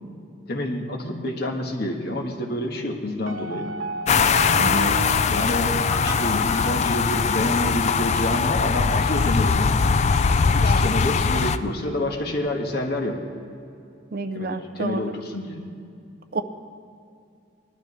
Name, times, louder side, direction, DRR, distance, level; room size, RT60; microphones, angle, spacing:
voice 1, 0.5-3.7 5.3-9.8 10.5-13.2 14.3-15.6, left 1 dB, 55° left, 2 dB, 1.5 m, -28 dB
sound 1, 3.3-7.6, right 3 dB, 90° right, 0.6 m, -34 dB
sound 2, 4.1-11.6, left 5 dB, 35° left, 0.3 m, -21 dB
voice 2, 4.6-5.0 14.1-15.0 16.3-16.4, right 3 dB, 50° right, 9 dB, 0.6 m, -29 dB
20.0 x 12.0 x 3.3 m, 2.5 s
head